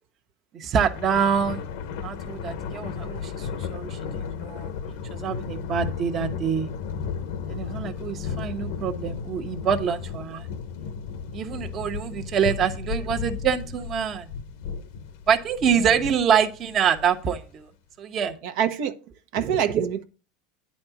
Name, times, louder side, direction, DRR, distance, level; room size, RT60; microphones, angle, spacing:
voice 1, 0.5-1.6 2.0-4.7 5.1-6.7 7.5-10.5 11.3-14.3 15.3-17.7 18.0-18.3 19.4-19.9, right 7 dB, 40° right, 1.0 m, -25 dB
Thunder, 0.8-17.4, left 6 dB, 75° left, 1.1 m, -34 dB
voice 2, 18.4-18.9 19.3-20.0, right 9 dB, 70° right, 1.0 m, -26 dB
9.8 x 4.2 x 7.2 m
supercardioid pair, 120°, 0 cm